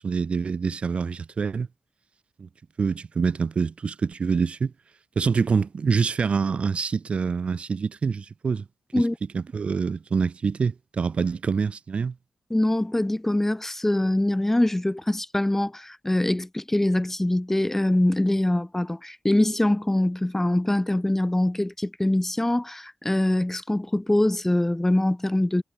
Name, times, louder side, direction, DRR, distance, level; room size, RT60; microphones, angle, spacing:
voice 1, 0.0-1.7 2.4-2.5 2.8-4.7 5.2-8.6 9.0-9.1 9.3-12.1, right 5 dB, 55° right, 0.7 m, -26 dB
voice 2, 12.5-25.6, left 1 dB, 15° left, 1.5 m, -23 dB
cardioid pair, 50°, 2 cm